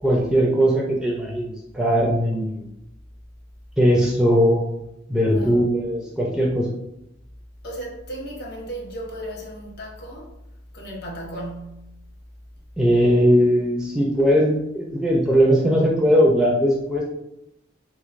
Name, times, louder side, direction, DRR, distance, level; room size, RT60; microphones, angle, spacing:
voice 1, 0.0-2.7 3.8-4.8 5.1-6.7 12.8-17.1, equal, 5° right, -3 dB, 0.4 m, -19 dB
voice 2, 5.3-5.6 7.6-10.3 10.7-11.9, right 1 dB, 55° left, -2 dB, 0.9 m, -35 dB
3.5 x 3.1 x 2.4 m, 0.85 s
head